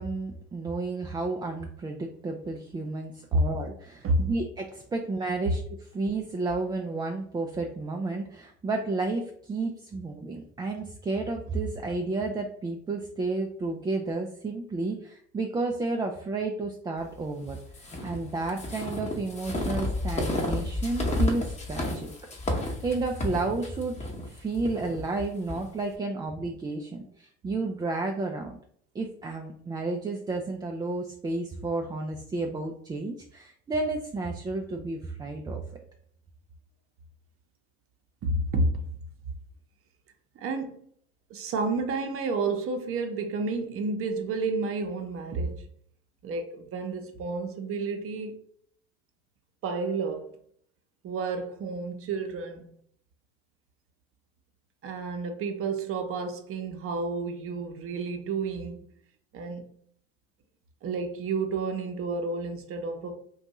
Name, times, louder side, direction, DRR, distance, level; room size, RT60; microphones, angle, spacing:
voice 1, 0.0-22.1 22.8-24.0 24.2-28.6 28.9-35.6, right 3 dB, 15° right, 0.3 m, -32 dB
sound 1, 17.7-25.6, left 2 dB, 20° left, 0.9 m, -31 dB
voice 2, 38.2-39.0 40.3-40.8 41.3-45.7 46.2-48.4 49.6-50.4 51.0-52.7 54.8-58.9 59.3-59.7 60.8-63.2, right 3 dB, 45° right, 0.7 m, -30 dB
2.6 x 2.3 x 4.0 m
hypercardioid pair, 75°, 32 cm